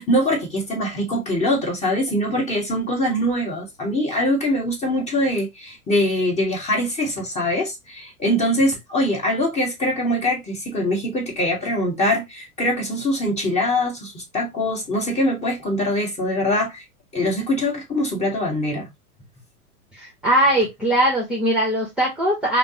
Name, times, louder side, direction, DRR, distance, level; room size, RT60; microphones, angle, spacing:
voice 1, 0.0-16.8 17.1-18.9, left 1 dB, 15° left, 1.3 m, -23 dB
voice 2, 19.9-22.6, right 1 dB, ahead, 0.9 m, -20 dB
5.1 x 2.2 x 2.7 m
figure-of-eight pair, 100°, 44 cm